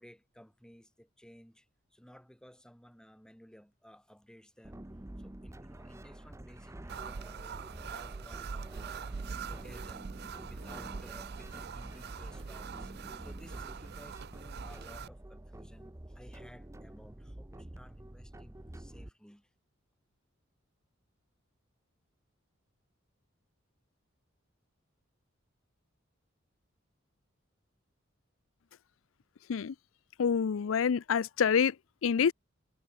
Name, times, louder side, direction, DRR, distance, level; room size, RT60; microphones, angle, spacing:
voice 1, 0.0-4.9 5.2-10.1 10.4-19.5, equal, 5° left, 3.5 m, -57 dB
sound 1, 4.6-19.1, right 1 dB, 15° right, 0.7 m, -48 dB
sound 2, 6.9-15.1, right 6 dB, 55° right, 0.5 m, -43 dB
voice 2, 30.2-31.7 32.0-32.3, left 7 dB, 80° left, 0.4 m, -27 dB
head